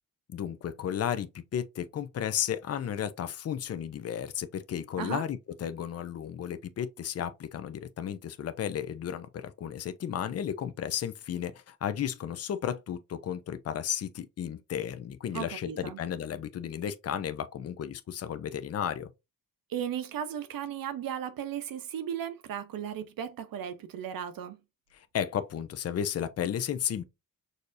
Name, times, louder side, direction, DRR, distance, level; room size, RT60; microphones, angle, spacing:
voice 1, 0.3-19.1 24.9-27.0, left 9 dB, 45° left, 0.5 m, -33 dB
voice 2, 15.3-16.0 19.7-24.6, right 9 dB, 80° right, 0.7 m, -36 dB
6.3 x 2.7 x 2.5 m
wide cardioid pair, 130°, 34 cm